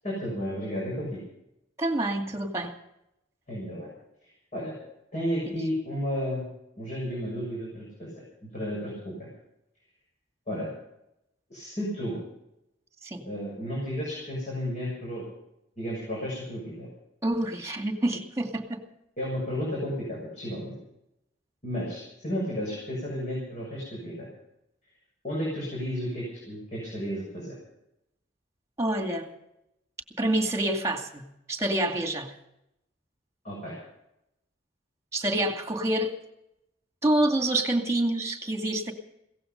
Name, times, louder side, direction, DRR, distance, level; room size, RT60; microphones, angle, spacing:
voice 1, 0.0-1.2 3.5-3.9 4.5-4.7 5.1-6.5 6.8-9.3 10.5-10.7 11.5-12.2 13.2-15.2 15.8-16.9 19.2-20.8 21.6-24.3 25.2-27.6 33.4-33.7, equal, 40° left, -4 dB, 6.8 m, -33 dB
voice 2, 1.8-2.7 13.0-13.2 17.2-18.8 28.8-29.3 30.2-32.3 35.1-36.2 37.0-38.9, right 1 dB, 15° right, 5 dB, 2.4 m, -27 dB
17.5 x 15.0 x 5.4 m, 0.83 s
head